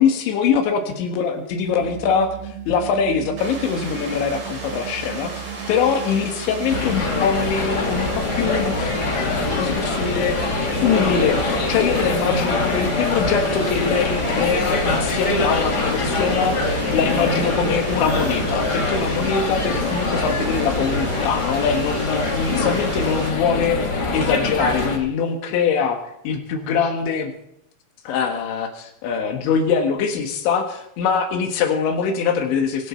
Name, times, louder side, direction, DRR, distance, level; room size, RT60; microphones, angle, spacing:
voice 1, 0.0-5.3 5.7-8.1 8.4-10.4 10.7-23.8 24.1-26.0 26.3-27.3 28.1-32.9, left 6 dB, 85° left, 5 dB, 3.8 m, -23 dB
sound 1, 1.7-21.2, right 10 dB, 70° right, 3.9 m, -36 dB
Water, 3.4-23.3, right 3 dB, 40° right, 4.5 m, -35 dB
sound 2, 6.7-25.0, left 3 dB, 35° left, 1.6 m, -24 dB
23.5 x 11.0 x 4.4 m, 0.75 s
omnidirectional pair, 5.1 m